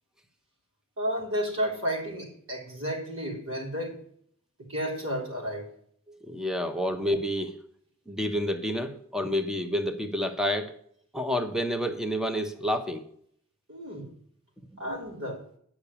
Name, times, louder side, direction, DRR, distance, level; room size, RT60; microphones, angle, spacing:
voice 1, 1.0-4.0 4.7-5.7 6.6-6.7 13.7-14.1 14.8-15.4, equal, 65° right, -1 dB, 3.9 m, -32 dB
voice 2, 6.1-7.6 8.1-10.7 11.1-13.0, equal, 5° right, 7 dB, 1.0 m, -29 dB
10.5 x 6.0 x 6.9 m, 0.63 s
head